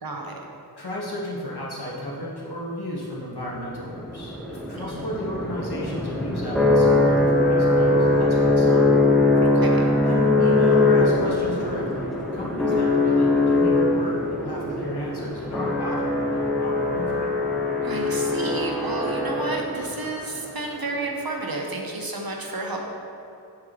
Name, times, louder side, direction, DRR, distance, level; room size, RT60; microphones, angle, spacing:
voice 1, 0.0-0.3 4.7-5.1 9.4-9.9 17.8-22.8, right 2 dB, 60° right, 0 dB, 0.9 m, -31 dB
voice 2, 0.8-8.9 10.0-12.0 12.3-17.3, equal, 75° left, -5 dB, 1.5 m, -33 dB
sound 1, 3.7-20.0, left 2 dB, ahead, 1.1 m, -21 dB
7.3 x 6.5 x 3.1 m, 2.7 s
wide cardioid pair, 40°, 40 cm